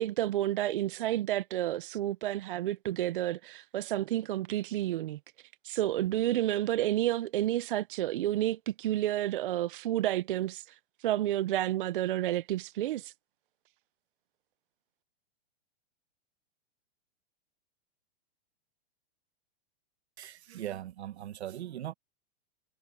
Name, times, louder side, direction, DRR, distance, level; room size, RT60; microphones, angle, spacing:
voice 1, 0.0-5.2 5.6-13.1, right 13 dB, 55° right, 0.5 m, -30 dB
voice 2, 20.2-21.9, right 12 dB, 85° right, 1.5 m, -39 dB
supercardioid pair, 175°, 32 cm